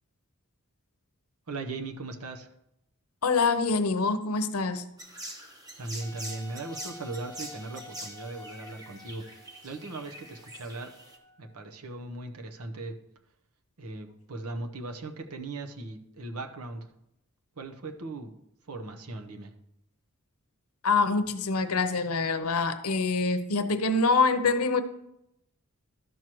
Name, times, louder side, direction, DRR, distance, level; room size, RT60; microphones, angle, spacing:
voice 1, 1.5-2.5 5.8-9.2 9.6-10.9 11.4-12.9 13.8-16.8 17.6-18.3 18.7-19.5, right 2 dB, 85° right, 5 dB, 0.9 m, -38 dB
voice 2, 3.2-4.8 20.8-24.8, left 4 dB, 80° left, 10 dB, 0.7 m, -25 dB
sound 1, 5.0-11.2, right 1 dB, 15° right, 1.0 m, -44 dB
Wind instrument woodwind instrument, 6.0-11.6, left 1 dB, 10° left, 0.9 m, -50 dB
12.0 x 6.2 x 3.0 m, 0.81 s
head